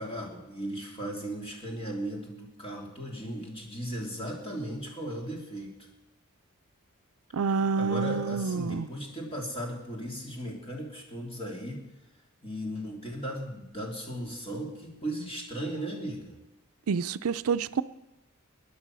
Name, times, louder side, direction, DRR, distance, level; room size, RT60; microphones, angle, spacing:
voice 1, 0.0-5.7 7.8-11.8 12.4-16.4, equal, 25° left, -1 dB, 3.2 m, -36 dB
voice 2, 7.3-8.9 16.9-17.8, right 5 dB, 75° right, 14 dB, 0.5 m, -28 dB
20.0 x 10.0 x 6.2 m, 0.93 s
head